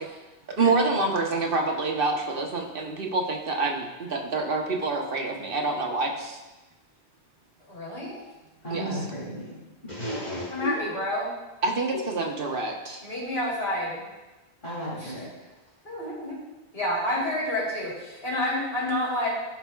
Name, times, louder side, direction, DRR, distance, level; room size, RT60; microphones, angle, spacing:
voice 1, 0.5-6.4 8.7-8.8 11.6-13.0, right 3 dB, 60° right, 1 dB, 1.3 m, -27 dB
voice 2, 7.7-8.2 10.5-11.3 13.0-14.1 15.0-15.1 15.8-16.4 16.7-19.3, left 1 dB, 65° left, -6 dB, 3.6 m, -29 dB
voice 3, 8.6-11.0 11.9-12.0 14.6-15.5, equal, 50° left, -8 dB, 2.7 m, -34 dB
16.0 x 5.8 x 2.3 m, 1.1 s
omnidirectional pair, 1.1 m